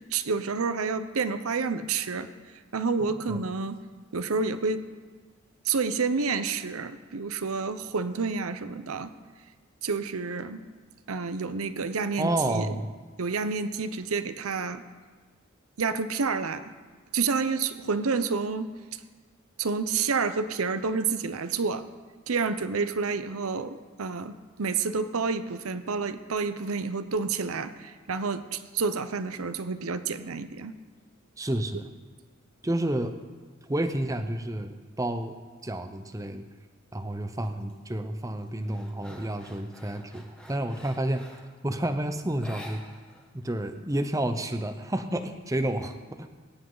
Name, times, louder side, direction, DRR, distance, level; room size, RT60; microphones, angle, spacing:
voice 1, 0.1-2.3 2.7-3.8 4.1-4.8 5.6-9.1 9.8-10.6 11.1-12.8 13.2-14.8 15.8-16.7 17.1-18.7 19.6-21.8 22.3-30.7, right 4 dB, 85° right, 12 dB, 0.7 m, -29 dB
voice 2, 12.2-12.9 31.4-31.9 32.6-33.2 33.7-35.3 35.6-36.4 36.9-42.8 43.3-46.3, right 1 dB, 15° right, 8 dB, 0.7 m, -30 dB
sound 1, 37.4-37.7 38.2-41.6 42.3-43.3 43.5-43.6 44.0-45.0, equal, 5° left, 1.3 m, -48 dB
21.0 x 10.0 x 4.0 m, 1.4 s
head